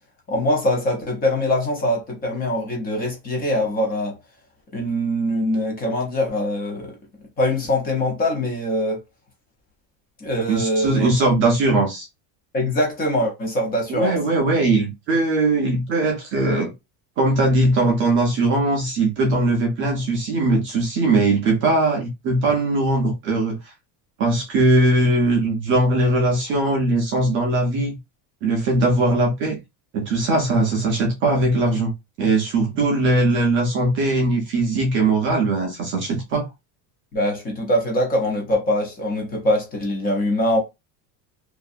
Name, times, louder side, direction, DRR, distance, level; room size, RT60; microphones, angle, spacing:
voice 1, 0.3-4.2 4.7-7.0 7.4-9.0 10.2-11.1 12.5-14.1 37.1-40.6, left 1 dB, 20° left, 0.6 m, -23 dB
voice 2, 10.5-12.1 13.9-16.7 17.2-23.6 24.2-28.0 28.4-29.6 29.9-31.9 32.2-36.5, right 2 dB, 30° right, 0.4 m, -20 dB
2.6 x 2.2 x 2.3 m
cardioid pair, 175°, 42 cm